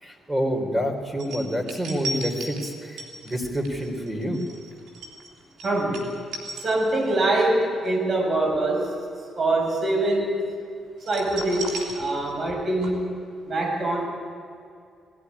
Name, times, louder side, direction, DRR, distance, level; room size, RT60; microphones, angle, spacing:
voice 1, 0.0-4.4, equal, 10° right, 3 dB, 4.3 m, -28 dB
sound 1, 1.2-7.3 7.6-7.9 11.0-12.6 12.8-12.9, right 2 dB, 80° right, 3.2 m, -36 dB
voice 2, 5.6-6.2 6.6-8.9 9.3-10.4 11.0-13.1 13.5-14.1, right 2 dB, 50° right, 0 dB, 7.1 m, -24 dB
19.0 x 14.0 x 9.9 m, 2.3 s
supercardioid pair, 65°, 0 cm